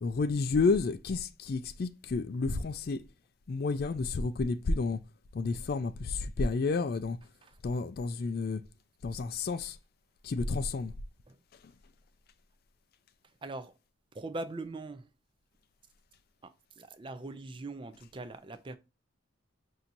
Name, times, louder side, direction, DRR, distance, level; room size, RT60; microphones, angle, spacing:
voice 1, 0.0-3.0 3.5-5.0 5.3-7.2 7.6-8.6 9.0-9.8 10.2-10.9, left 4 dB, 50° left, 0.3 m, -30 dB
voice 2, 7.2-7.6 11.3-11.4 13.4-13.8 14.1-15.1 16.4-18.8, right 2 dB, 25° right, 0.4 m, -42 dB
5.8 x 2.7 x 2.5 m
head